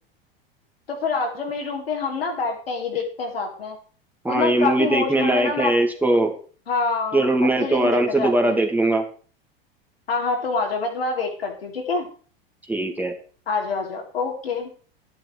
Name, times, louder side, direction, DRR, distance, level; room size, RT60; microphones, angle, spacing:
voice 1, 0.9-3.8 4.3-5.8 6.7-7.3 7.6-8.6 10.1-12.1 13.5-14.7, left 4 dB, 90° left, 1 dB, 3.9 m, -26 dB
voice 2, 4.2-6.3 7.1-9.0 12.7-13.1, right 2 dB, 5° right, 2 dB, 2.4 m, -20 dB
12.0 x 10.5 x 4.7 m, 0.41 s
hypercardioid pair, 95°, 29 cm